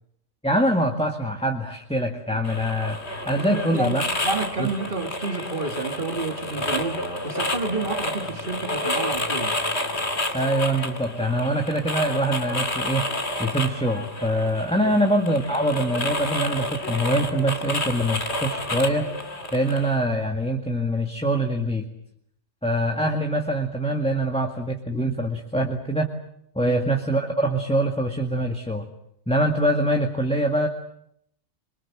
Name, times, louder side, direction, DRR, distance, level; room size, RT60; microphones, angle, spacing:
voice 1, 0.4-3.0 3.3-4.0 4.6-4.7 10.3-13.1 13.4-19.1 19.5-21.8 22.6-26.1 26.6-28.9 29.3-30.7, right 1 dB, 5° left, 2.0 m, -24 dB
sound 1, 2.4-20.0, left 1 dB, 55° left, 3.2 m, -30 dB
voice 2, 3.4-9.6 14.8-15.0 26.6-26.8, right 3 dB, 40° right, 2.1 m, -30 dB
27.0 x 24.0 x 7.5 m
omnidirectional pair, 1.3 m